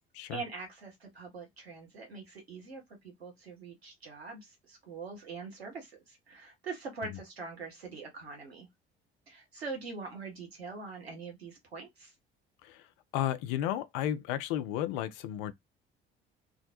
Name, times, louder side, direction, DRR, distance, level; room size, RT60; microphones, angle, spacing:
voice 1, 0.3-8.7 9.3-12.1, right 4 dB, 85° right, 0.8 m, -43 dB
voice 2, 13.1-15.5, left 11 dB, 65° left, 0.4 m, -33 dB
2.4 x 2.1 x 2.7 m
figure-of-eight pair, 50°, 30 cm